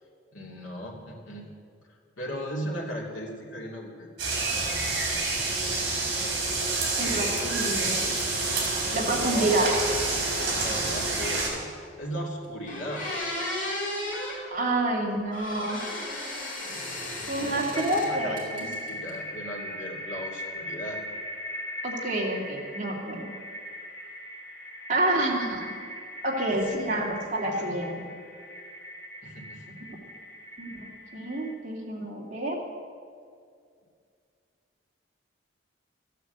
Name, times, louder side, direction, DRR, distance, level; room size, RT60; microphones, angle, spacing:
voice 1, 0.3-1.5 1.9-4.1 9.1-11.7 12.0-13.1 17.4-21.0 26.7-27.8 29.2-29.8, equal, 80° left, -2 dB, 2.9 m, -37 dB
sound 1, 4.2-11.5, right 3 dB, 60° right, 4.2 m, -28 dB
voice 2, 7.0-8.1 8.9-9.7 14.5-15.8 17.3-18.7 21.8-23.3 24.9-25.9 26.2-28.0 29.9-30.0 30.6-30.9 31.1-32.6, right 1 dB, 40° right, -2 dB, 2.4 m, -28 dB
sound 2, 12.2-12.3 12.7-14.4 15.3-18.1 18.4-19.1, left 1 dB, 45° left, 4.4 m, -34 dB
sound 3, 17.4-31.5, equal, 15° left, 2.7 m, -40 dB
14.0 x 9.3 x 8.1 m, 2.2 s
head